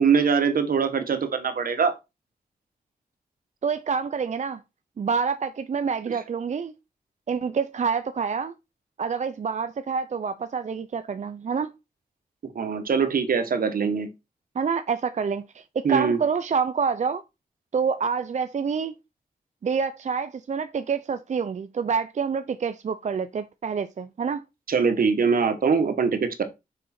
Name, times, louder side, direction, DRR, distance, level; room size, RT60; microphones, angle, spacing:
voice 1, 0.0-1.9 12.5-14.1 15.8-16.2 24.7-26.4, right 6 dB, 75° right, 1.3 m, -22 dB
voice 2, 3.6-4.6 5.0-6.7 7.3-8.5 9.0-11.7 14.6-17.2 17.7-18.9 19.6-24.4, right 6 dB, 55° right, 0.5 m, -27 dB
6.6 x 4.9 x 4.3 m
wide cardioid pair, 110°, 15 cm